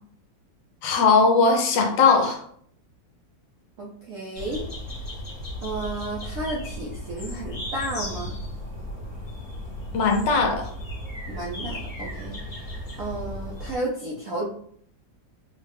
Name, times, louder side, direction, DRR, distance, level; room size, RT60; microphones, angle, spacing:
voice 1, 0.8-2.4 9.9-10.7, left 4 dB, 75° left, 3 dB, 1.3 m, -19 dB
voice 2, 3.8-4.6 5.6-8.4 11.3-14.5, right 1 dB, 75° right, -3 dB, 0.7 m, -32 dB
sound 1, 4.4-13.8, left 1 dB, 30° left, 1.1 m, -35 dB
3.9 x 2.1 x 3.3 m, 0.62 s
omnidirectional pair, 2.0 m